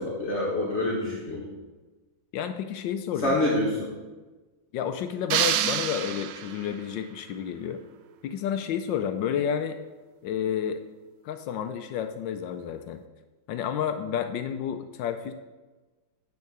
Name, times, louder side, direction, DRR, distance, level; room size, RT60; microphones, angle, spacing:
voice 1, 0.0-1.5 3.2-3.9, left 1 dB, 40° left, -3 dB, 1.5 m, -26 dB
voice 2, 2.3-3.4 4.7-7.8 8.2-9.8 10.2-10.8 11.2-13.0 13.5-15.3, left 8 dB, 75° left, 9 dB, 1.2 m, -30 dB
sound 1, 5.3-6.8, right 10 dB, 75° right, 1.2 m, -27 dB
9.4 x 4.7 x 6.7 m, 1.2 s
omnidirectional pair, 2.2 m